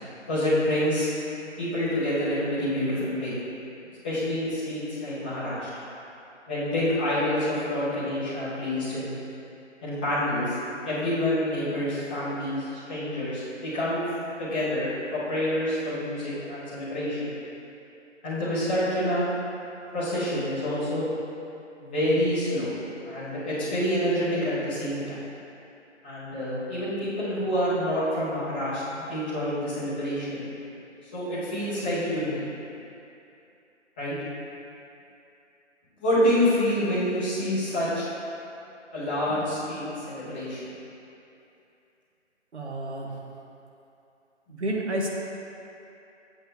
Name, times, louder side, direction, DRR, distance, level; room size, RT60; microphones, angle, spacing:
voice 1, 0.3-1.1 1.6-3.3 4.0-5.7 6.5-9.1 9.8-10.6 10.8-14.0 14.4-17.3 18.2-19.3 19.9-21.1 21.8-22.7 23.0-25.2 26.0-30.5 31.1-32.5 34.0-34.1 36.0-38.1 38.9-40.7, left 1 dB, 10° left, -14 dB, 0.9 m, -27 dB
voice 2, 42.5-43.1 44.5-45.1, right 1 dB, 65° right, -2 dB, 1.2 m, -30 dB
8.0 x 7.8 x 2.3 m, 2.8 s
figure-of-eight pair, 160°, 37 cm